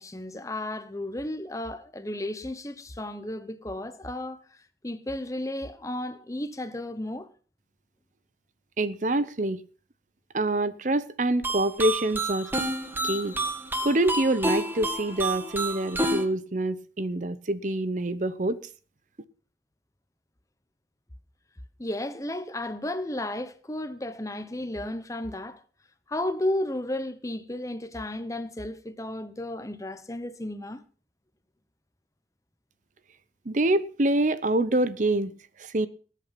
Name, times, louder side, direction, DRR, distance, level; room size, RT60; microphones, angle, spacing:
voice 1, 0.0-4.4 4.8-7.3 21.8-25.6 26.1-30.8, left 1 dB, 20° left, 1.0 m, -33 dB
voice 2, 8.8-9.6 10.3-12.5 13.0-13.3 13.8-18.6 33.5-35.3 35.6-35.9, right 1 dB, 45° right, 0.8 m, -26 dB
sound 1, 11.4-16.3, right 1 dB, 10° right, 1.6 m, -29 dB
19.5 x 8.3 x 5.8 m
head